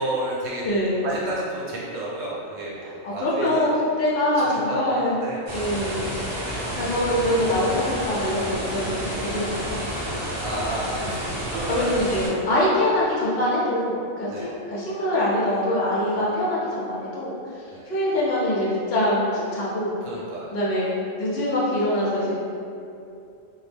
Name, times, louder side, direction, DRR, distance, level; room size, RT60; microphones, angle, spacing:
voice 1, 0.0-0.6 1.0-3.7 4.4-5.4 6.3-6.4 10.1-11.9 12.5-12.7 14.3-14.5 16.2-16.3 17.7-17.9 20.0-20.6, right 2 dB, 75° right, -5 dB, 1.0 m, -31 dB
voice 2, 0.6-1.1 3.0-5.2 5.5-6.1 6.7-10.4 11.0-11.1 11.7-17.3 17.9-20.0 20.5-20.9 21.2-22.3, left 1 dB, 65° left, -7 dB, 0.6 m, -24 dB
sound 1, 5.5-12.3, equal, 30° right, 0.5 m, -30 dB
2.2 x 2.0 x 3.2 m, 2.6 s
omnidirectional pair, 1.4 m